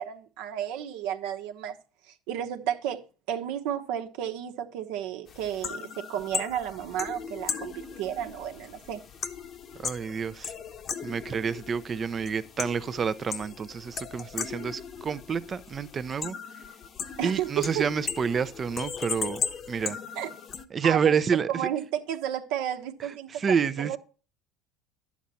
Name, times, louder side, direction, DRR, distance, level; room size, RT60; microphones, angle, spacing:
voice 1, 0.0-1.8 2.1-3.0 3.3-9.0 17.2-17.8 20.2-20.3 20.8-21.2 21.5-24.0, right 10 dB, 70° right, 1.1 m, -32 dB
sound 1, 5.3-20.7, left 6 dB, 45° left, 1.0 m, -37 dB
voice 2, 9.8-10.5 11.0-16.4 17.2-20.0 20.7-21.7 23.0-24.0, right 6 dB, 35° right, 0.6 m, -29 dB
11.5 x 7.2 x 4.2 m
hypercardioid pair, 75°, 0 cm